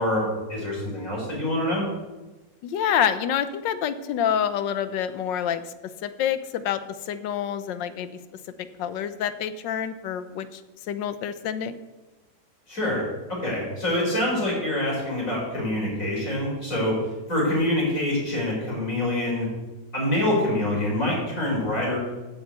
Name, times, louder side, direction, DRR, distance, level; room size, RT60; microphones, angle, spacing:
voice 1, 0.0-1.9 12.7-17.0 17.3-19.5 19.9-22.1, left 1 dB, 45° left, -4 dB, 5.2 m, -25 dB
voice 2, 2.6-5.7 6.0-8.1 8.6-10.6 10.9-11.7, left 9 dB, 85° left, 12 dB, 1.5 m, -27 dB
8.4 x 7.6 x 8.0 m, 1.1 s
omnidirectional pair, 1.9 m